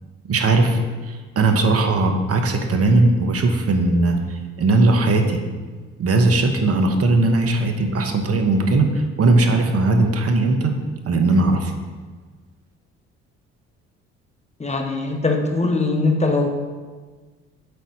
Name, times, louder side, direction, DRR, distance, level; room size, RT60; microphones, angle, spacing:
voice 1, 0.3-0.8 1.1-5.4 6.0-10.7 11.1-11.7, right 2 dB, 45° right, 5 dB, 1.1 m, -18 dB
voice 2, 14.6-16.5, left 3 dB, 20° left, 2 dB, 1.3 m, -21 dB
8.1 x 4.1 x 4.8 m, 1.4 s
hypercardioid pair, 50°, 32 cm